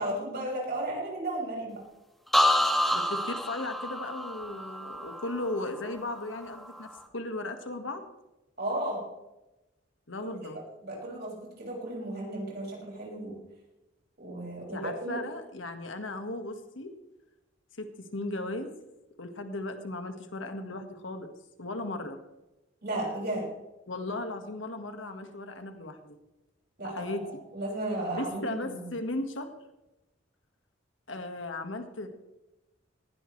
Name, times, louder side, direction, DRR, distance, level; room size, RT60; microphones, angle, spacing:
voice 1, 0.0-1.8 8.6-9.0 10.2-13.4 14.2-15.2 22.8-23.5 26.8-27.2 27.5-28.9, right 1 dB, 55° right, -3 dB, 6.4 m, -34 dB
sound 1, 2.3-6.1 6.5-7.0, left 1 dB, ahead, 1.4 m, -28 dB
voice 2, 2.9-8.0 10.1-10.6 14.7-16.9 17.8-18.7 19.2-21.3 21.6-22.2 23.9-26.2 26.8-27.4 28.1-29.5 31.1-32.1, left 2 dB, 80° left, 6 dB, 1.7 m, -36 dB
19.5 x 16.0 x 3.3 m, 1.0 s
head